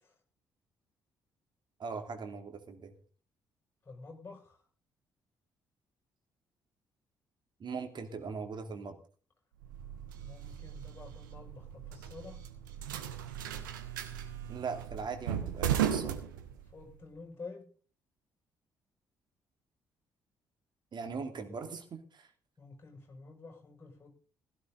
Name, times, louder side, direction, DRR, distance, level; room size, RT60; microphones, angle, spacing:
voice 1, 1.8-2.9 7.6-9.0 14.5-16.2 20.9-22.3, right 5 dB, 45° right, 6 dB, 2.6 m, -40 dB
voice 2, 3.8-4.6 10.2-12.4 16.7-17.6 22.6-24.1, left 3 dB, 20° left, 2 dB, 6.5 m, -49 dB
sound 1, 9.6-17.0, right 9 dB, 75° right, 1.1 m, -37 dB
16.5 x 12.5 x 4.0 m, 0.40 s
figure-of-eight pair, 45°, 11 cm